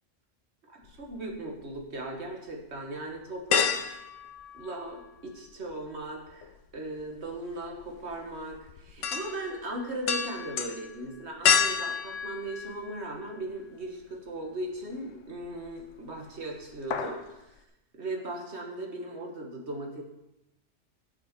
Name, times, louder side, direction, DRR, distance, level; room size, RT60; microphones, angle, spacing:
voice 1, 0.7-3.7 4.5-6.5 6.7-17.4 18.0-20.0, right 1 dB, 65° right, 1 dB, 1.7 m, -38 dB
sound 1, 0.9-1.8 2.3-2.4 3.5-5.2 5.5-13.4 13.8-13.9 15.4-15.9 16.2-16.4 16.7-17.3 17.6-17.7, left 6 dB, 90° left, 1.1 m, -30 dB
10.0 x 7.0 x 5.2 m, 0.92 s
omnidirectional pair, 1.2 m